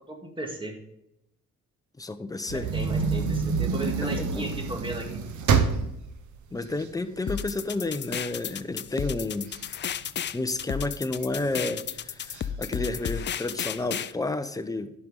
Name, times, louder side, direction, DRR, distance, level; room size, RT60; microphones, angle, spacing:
voice 1, 0.1-0.8 2.5-5.2, right 2 dB, 15° right, 2 dB, 2.1 m, -35 dB
voice 2, 2.0-2.7 4.4-4.5 6.5-9.5 10.3-14.9, left 2 dB, 10° left, 9 dB, 0.8 m, -31 dB
sound 1, 2.5-7.7 8.2-8.3 8.6-10.6 11.2-11.7 12.3-12.4 12.7-12.8 13.3-13.9, right 5 dB, 75° right, 1.2 m, -28 dB
sound 2, 7.3-14.1, left 9 dB, 35° left, 0.4 m, -33 dB
10.5 x 5.5 x 5.2 m, 0.82 s
cardioid pair, 90°, 30 cm